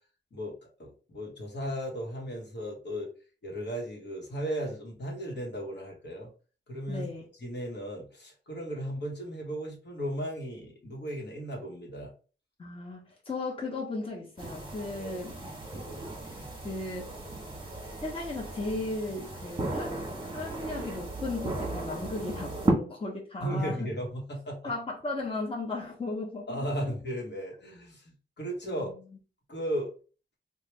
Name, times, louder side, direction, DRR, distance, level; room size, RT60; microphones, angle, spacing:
voice 1, 0.3-3.1 3.4-6.3 6.7-7.1 7.4-12.1 15.0-15.2 23.4-24.7 26.5-28.9 29.5-29.9, equal, 60° left, -2 dB, 1.1 m, -35 dB
voice 2, 6.9-7.3 12.6-15.4 16.4-17.1 18.0-20.0 20.3-23.9 24.6-26.9 28.6-28.9, left 2 dB, 30° left, -3 dB, 0.9 m, -36 dB
sound 1, 14.4-22.7, right 2 dB, 25° right, 1.0 m, -35 dB
3.1 x 2.2 x 3.1 m, 0.37 s
wide cardioid pair, 110°, 20 cm